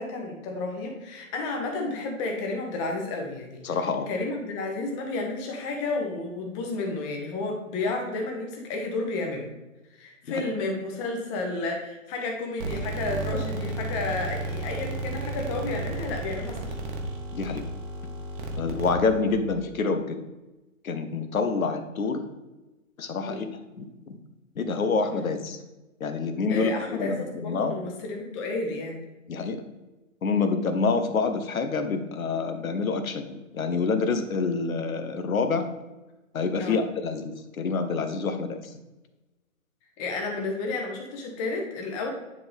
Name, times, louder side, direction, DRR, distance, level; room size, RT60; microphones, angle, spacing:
voice 1, 0.0-3.8 4.1-9.5 10.0-16.8 23.2-23.4 26.5-29.0 36.6-36.8 40.0-42.1, left 3 dB, 20° left, 2 dB, 1.1 m, -31 dB
voice 2, 3.6-4.1 10.3-10.4 17.3-17.6 18.6-20.2 20.8-22.2 23.0-23.5 23.8-23.9 24.6-25.6 26.0-27.7 29.3-29.6 30.2-35.7 36.3-38.6, left 4 dB, 80° left, 9 dB, 0.9 m, -27 dB
sound 1, 12.6-19.4, right 2 dB, 35° right, 1.1 m, -33 dB
9.6 x 3.6 x 3.4 m, 1.1 s
hypercardioid pair, 140°, 42 cm